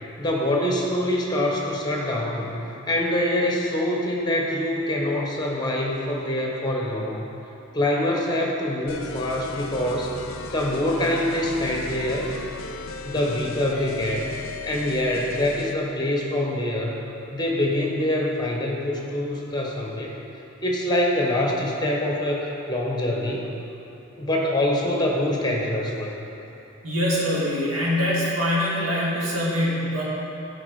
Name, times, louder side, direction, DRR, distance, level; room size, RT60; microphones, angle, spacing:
voice 1, 0.2-7.3 7.7-10.1 10.5-12.3 13.0-14.3 14.6-17.0 17.3-20.1 20.6-23.5 24.2-26.1, left 1 dB, 20° left, -1 dB, 1.1 m, -25 dB
sound 1, 8.9-15.8, left 4 dB, 85° left, 0.5 m, -36 dB
voice 2, 26.8-30.0, left 1 dB, 80° right, -6 dB, 2.2 m, -24 dB
12.0 x 4.9 x 4.9 m, 2.9 s
head